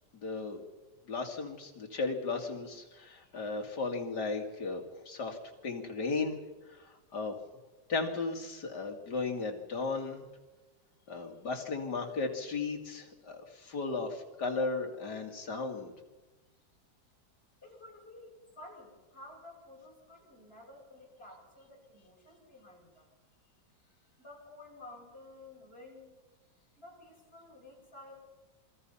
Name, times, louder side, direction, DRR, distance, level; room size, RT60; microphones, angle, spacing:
voice 1, 0.2-0.6 1.1-6.4 6.7-7.4 7.9-10.2 11.1-15.9, left 3 dB, 60° left, 2 dB, 3.1 m, -35 dB
voice 2, 17.6-23.1 24.2-26.1 26.8-28.1, left 2 dB, 30° left, -2 dB, 7.4 m, -52 dB
27.5 x 22.5 x 5.6 m, 1.2 s
omnidirectional pair, 2.0 m